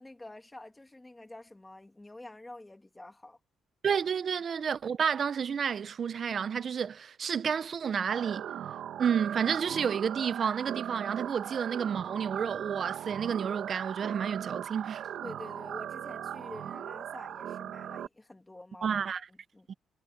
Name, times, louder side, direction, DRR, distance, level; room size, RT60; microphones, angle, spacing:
voice 1, 0.0-3.4 15.2-19.7, left 2 dB, 15° left, 2.6 m, -48 dB
voice 2, 3.8-8.4 9.0-15.0 18.8-19.2 19.7-19.8, right 7 dB, 50° right, 0.9 m, -30 dB
sound 1, 8.1-18.1, right 10 dB, 75° right, 2.0 m, -38 dB
cardioid pair, 90°, 0 cm